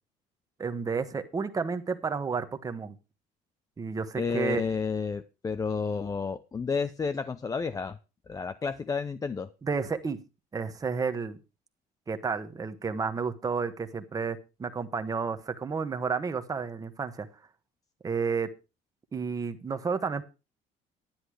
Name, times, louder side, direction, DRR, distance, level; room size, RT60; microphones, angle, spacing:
voice 1, 0.6-2.9 3.8-4.6 9.6-10.2 10.5-11.4 12.1-17.3 18.0-18.5 19.1-20.2, right 5 dB, 25° right, 9 dB, 1.3 m, -31 dB
voice 2, 4.2-8.0 8.3-9.5, left 5 dB, 20° left, 11 dB, 0.6 m, -31 dB
10.5 x 9.8 x 4.8 m, 0.29 s
cardioid pair, 125°, 16 cm